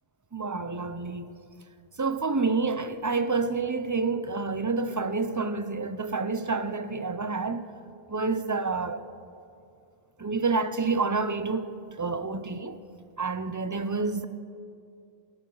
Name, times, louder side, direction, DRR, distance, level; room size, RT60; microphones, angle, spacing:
voice 1, 0.3-1.3 2.0-7.6 8.1-9.0 10.2-11.7 12.0-12.8 13.2-14.2, right 4 dB, 25° right, 0.5 m, -28 dB
29.0 x 12.0 x 3.9 m
omnidirectional pair, 1.1 m